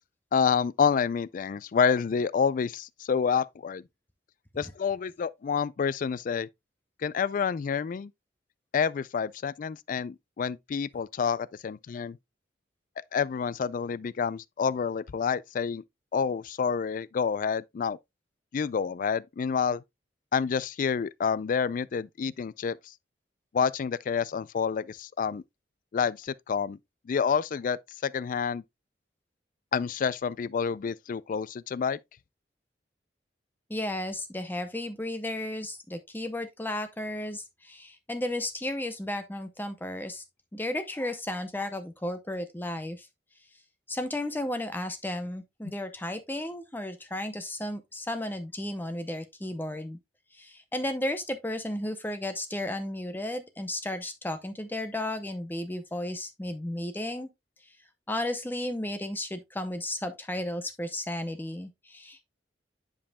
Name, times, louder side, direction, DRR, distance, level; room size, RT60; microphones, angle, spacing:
voice 1, 0.3-3.8 4.6-6.5 7.0-8.1 8.7-12.2 13.1-15.8 16.1-18.0 18.5-19.8 20.3-22.9 23.5-25.4 25.9-26.8 27.1-28.6 29.7-32.0, left 6 dB, 50° left, 0.3 m, -28 dB
voice 2, 33.7-40.2 40.5-43.1 43.9-50.0 50.3-57.3 57.6-57.7 58.1-62.3, left 1 dB, 10° left, 0.6 m, -34 dB
9.8 x 5.3 x 2.2 m
head